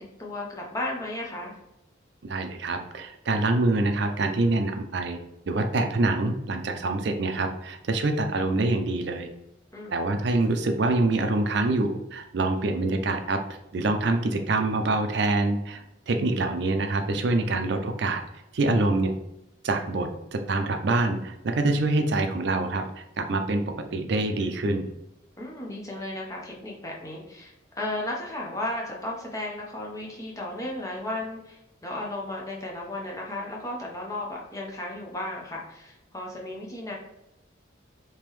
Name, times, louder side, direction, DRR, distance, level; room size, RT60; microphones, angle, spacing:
voice 1, 0.0-1.6 9.7-10.1 25.4-36.9, left 1 dB, 15° left, -2 dB, 0.7 m, -34 dB
voice 2, 2.2-5.2 5.5-9.3 9.9-18.2 18.5-19.1 19.6-23.6 23.9-24.9, right 2 dB, 60° right, 6 dB, 0.4 m, -25 dB
3.7 x 2.9 x 3.0 m, 0.87 s
head